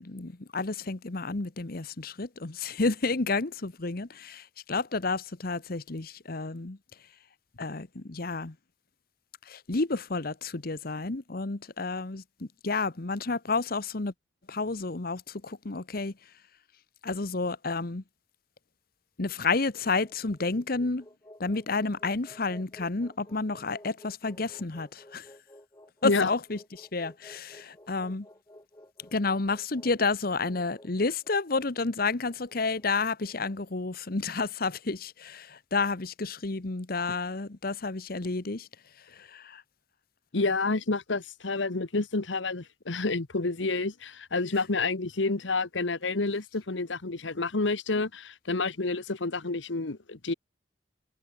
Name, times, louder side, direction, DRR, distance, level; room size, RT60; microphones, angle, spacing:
voice 1, 0.0-6.8 7.6-8.5 9.5-14.1 14.5-16.1 17.0-18.0 19.2-21.0 21.4-25.3 26.0-28.3 29.1-38.7 39.1-39.6, left 3 dB, 50° left, 1.1 m, -30 dB
sound 1, 19.7-33.9, left 1 dB, 20° left, 5.4 m, -54 dB
voice 2, 40.3-50.3, left 3 dB, 75° left, 1.2 m, -29 dB
head